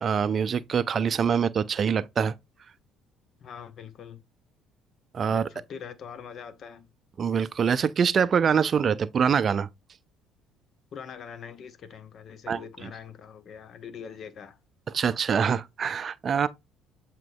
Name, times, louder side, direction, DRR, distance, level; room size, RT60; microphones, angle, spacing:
voice 1, 0.0-2.3 5.1-5.5 7.2-9.7 12.5-12.6 14.9-16.5, right 7 dB, 45° right, 0.4 m, -24 dB
voice 2, 3.4-4.2 5.3-6.9 10.9-14.6, left 7 dB, 55° left, 0.7 m, -43 dB
7.4 x 2.9 x 2.2 m
hypercardioid pair, 55°, 0 cm